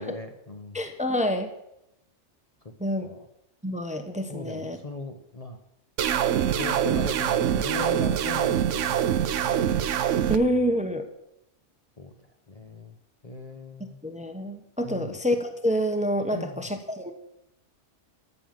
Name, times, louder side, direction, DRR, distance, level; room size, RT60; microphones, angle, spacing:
voice 1, 0.0-0.8 3.0-3.2 4.3-5.6 6.6-9.7 10.5-10.9 12.0-12.1 12.5-12.9 13.2-14.0 14.8-15.2 16.3-16.7, left 2 dB, 35° left, 5 dB, 1.0 m, -38 dB
voice 2, 0.7-1.5 2.8-3.1 3.6-4.8 10.3-11.1 14.0-17.1, equal, 5° right, 7 dB, 1.0 m, -27 dB
sound 1, 6.0-10.4, right 10 dB, 80° right, 1.1 m, -24 dB
13.5 x 7.4 x 7.7 m, 0.84 s
omnidirectional pair, 1.3 m